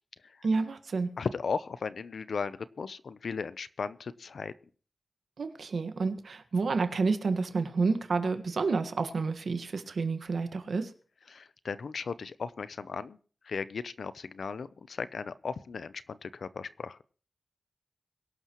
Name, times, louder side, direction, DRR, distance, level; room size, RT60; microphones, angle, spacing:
voice 1, 0.4-1.1 5.4-10.9, right 4 dB, 75° right, 8 dB, 1.6 m, -29 dB
voice 2, 1.2-4.5 11.3-13.2 13.4-17.0, left 5 dB, 80° left, 15 dB, 0.6 m, -36 dB
22.5 x 11.5 x 3.1 m, 0.40 s
wide cardioid pair, 80°, 0 cm